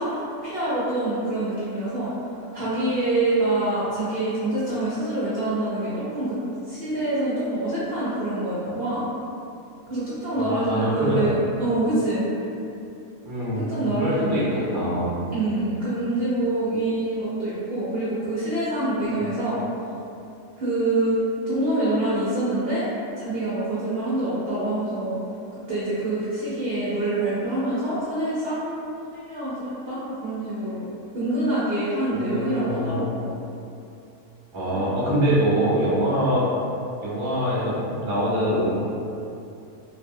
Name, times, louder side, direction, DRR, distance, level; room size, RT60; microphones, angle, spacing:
voice 1, 0.0-2.1 2.5-6.3 6.7-9.1 9.9-11.3 11.6-12.2 13.6-14.6 15.3-19.6 20.6-21.2 21.5-22.9 23.2-25.2 25.7-28.8 29.3-33.3 34.7-34.8, right 2 dB, 55° right, -11 dB, 0.7 m, -26 dB
voice 2, 10.4-11.4 13.2-13.7 14.0-15.2 32.1-33.0 34.5-36.4 37.0-38.7, equal, 25° right, -10 dB, 0.5 m, -24 dB
3.3 x 2.3 x 2.6 m, 2.7 s
omnidirectional pair, 1.6 m